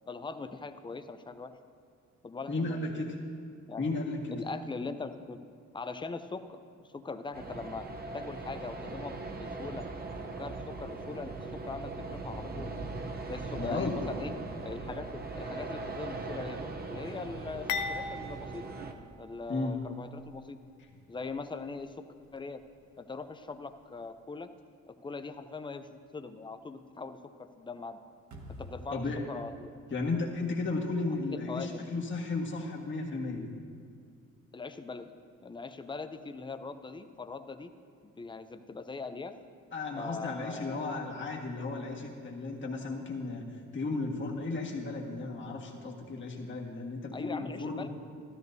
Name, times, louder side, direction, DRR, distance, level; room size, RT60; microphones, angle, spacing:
voice 1, 0.1-1.5 2.2-3.0 3.7-3.9 4.3-5.4 5.7-6.6 6.9-7.8 8.1-9.8 10.4-12.7 13.3-14.3 14.6-18.7 19.2-20.6 21.1-22.0 22.3-22.6 23.0-24.5 24.9-28.0 28.6-29.0 29.3-29.7 31.3-31.9 34.5-35.1 35.4-37.7 38.0-39.3 39.9-40.9 47.1-47.9, left 4 dB, 15° left, 9 dB, 0.5 m, -41 dB
voice 2, 2.5-3.1 3.8-4.4 13.6-13.9 19.5-19.8 28.9-29.3 29.9-33.4 39.7-43.4 43.7-47.9, left 3 dB, 40° left, -1 dB, 1.6 m, -34 dB
sound 1, 7.3-18.9, right 3 dB, 30° right, 0.8 m, -40 dB
sound 2, 17.7-19.8 20.2-20.4 21.2-21.4, left 4 dB, 80° left, 0.8 m, -38 dB
sound 3, 28.3-31.4, equal, 70° right, 1.5 m, -50 dB
13.5 x 13.0 x 2.7 m, 2.2 s
cardioid pair, 90°, 30 cm